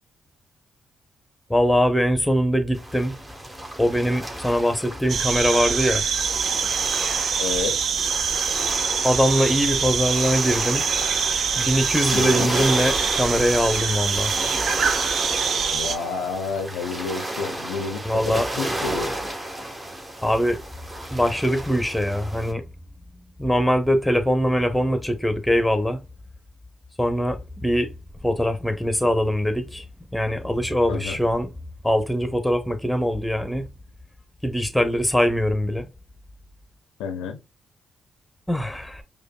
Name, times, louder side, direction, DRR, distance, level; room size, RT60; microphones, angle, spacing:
voice 1, 1.5-3.2 3.8-6.0 9.0-10.9 11.6-14.3 18.0-18.5 20.2-20.6 21.1-22.6 23.4-26.0 27.0-27.9 28.2-29.8 30.1-31.5 31.8-33.7 34.4-35.9 38.5-39.0, equal, 5° left, 0.9 m, -22 dB
sound 1, 2.7-22.5, right 1 dB, 25° right, 1.3 m, -32 dB
sound 2, 5.1-16.0, right 6 dB, 65° right, 0.4 m, -24 dB
voice 2, 7.4-7.8 12.1-12.5 15.7-19.1 30.9-31.2 37.0-37.4, left 5 dB, 85° left, 0.5 m, -30 dB
5.0 x 2.3 x 2.3 m
hypercardioid pair, 45°, 0 cm